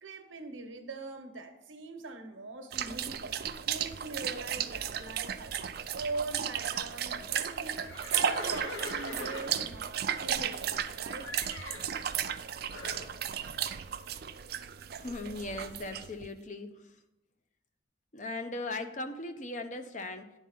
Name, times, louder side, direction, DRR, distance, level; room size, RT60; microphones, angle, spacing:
voice 1, 0.0-3.4 3.7-5.6 5.9-7.8 8.1-11.3, right 3 dB, 90° right, 7 dB, 1.0 m, -42 dB
sound 1, 2.7-16.3, right 9 dB, 55° right, 0.4 m, -34 dB
Livestock farm animals working animals, 7.8-10.9 11.2-11.9 12.7-13.1, left 2 dB, 90° left, 1.0 m, -42 dB
voice 2, 15.0-16.9 18.1-20.3, left 2 dB, 40° left, 7 dB, 0.6 m, -38 dB
10.0 x 4.2 x 5.4 m, 0.95 s
head